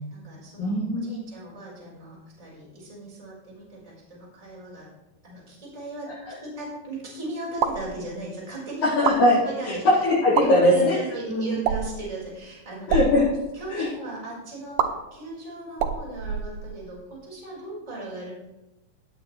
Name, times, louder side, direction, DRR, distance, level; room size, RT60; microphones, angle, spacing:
voice 1, 0.0-4.9 5.2-6.1 6.4-8.8 9.4-10.0 10.4-12.9 13.5-18.3, right 2 dB, 10° right, -6 dB, 4.7 m, -37 dB
voice 2, 0.6-1.2 6.3-6.4 9.0-9.4 10.0-11.0 11.3-11.5 12.9-13.3 13.7-13.9, left 1 dB, 70° left, -11 dB, 6.0 m, -20 dB
sound 1, 7.5-7.9 8.9-9.2 10.2-10.5 11.6-12.0 12.8-13.1 14.8-14.9 15.7-16.9, right 8 dB, 80° right, 2.6 m, -26 dB
17.5 x 9.0 x 3.2 m, 0.97 s
omnidirectional pair, 4.1 m